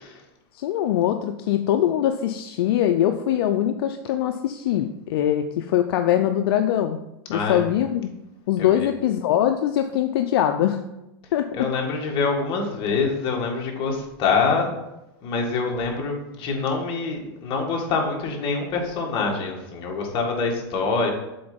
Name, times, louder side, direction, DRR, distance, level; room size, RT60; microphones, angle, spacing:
voice 1, 0.5-7.0 7.3-8.1 8.5-10.8 11.3-11.7, left 11 dB, 70° left, 7 dB, 0.5 m, -22 dB
voice 2, 7.3-7.6 8.6-8.9 11.6-14.7 15.2-21.1, left 4 dB, 40° left, 0 dB, 1.8 m, -25 dB
7.8 x 3.9 x 5.2 m, 0.91 s
supercardioid pair, 140°, 13 cm